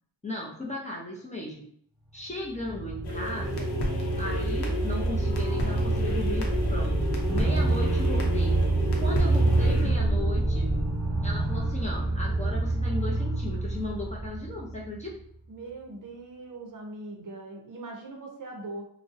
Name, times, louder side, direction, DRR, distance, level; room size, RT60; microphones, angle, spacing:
voice 1, 0.2-1.7 2.1-3.7 4.2-6.4 6.7-6.9 7.3-8.6 9.0-10.7 11.2-15.1, left 1 dB, 20° left, -5 dB, 0.4 m, -36 dB
sound 1, 2.3-15.1, right 2 dB, 10° right, 0.8 m, -27 dB
sound 2, 3.0-11.0, left 1 dB, 75° left, 0.6 m, -33 dB
voice 2, 15.5-18.8, right 2 dB, 50° right, 1 dB, 0.5 m, -41 dB
2.5 x 2.0 x 2.4 m, 0.65 s
wide cardioid pair, 150°, 40 cm